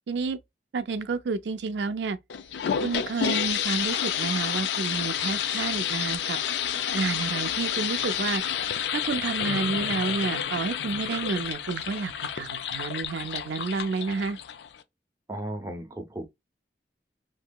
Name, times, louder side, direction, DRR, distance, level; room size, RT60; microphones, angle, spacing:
voice 1, 0.1-0.4 0.7-2.2 2.8-6.4 6.9-8.4 8.9-14.4, right 4 dB, 85° right, 0.4 m, -30 dB
sound 1, 2.3-14.8, left 9 dB, 85° left, 0.3 m, -30 dB
voice 2, 15.3-16.3, right 1 dB, 15° right, 0.5 m, -35 dB
2.8 x 2.6 x 2.2 m
head